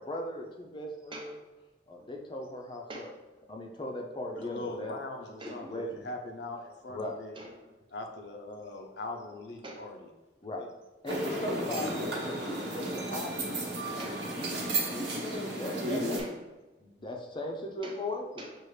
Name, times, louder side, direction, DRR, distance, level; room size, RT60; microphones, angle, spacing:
voice 1, 0.0-1.3 1.9-3.1 3.5-5.0 5.4-6.1 6.9-7.1 10.4-10.6 11.0-13.6 14.3-16.4 16.8-18.2, left 1 dB, 25° left, 1 dB, 0.6 m, -38 dB
voice 2, 2.9-3.2 4.4-4.8 5.4-5.6 7.4-7.7 9.6-9.9 11.8-11.9 14.0-14.4 16.2-16.4 17.8-18.0 18.4-18.6, right 1 dB, 30° right, 0 dB, 0.6 m, -45 dB
voice 3, 4.4-7.4 7.9-10.0 10.6-10.7, left 2 dB, 70° left, 3 dB, 0.6 m, -41 dB
sound 1, 11.1-16.2, right 1 dB, 70° right, 1.0 m, -33 dB
6.2 x 2.4 x 3.2 m, 1.2 s
head